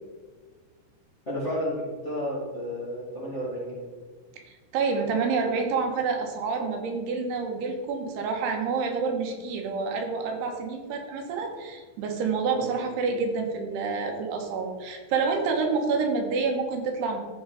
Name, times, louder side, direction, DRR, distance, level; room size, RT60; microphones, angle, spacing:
voice 1, 1.2-3.8 12.5-12.7, equal, 30° left, -7 dB, 1.4 m, -32 dB
voice 2, 4.5-17.2, right 4 dB, 85° right, 3 dB, 3.2 m, -28 dB
13.5 x 5.2 x 4.0 m, 1.4 s
omnidirectional pair, 4.7 m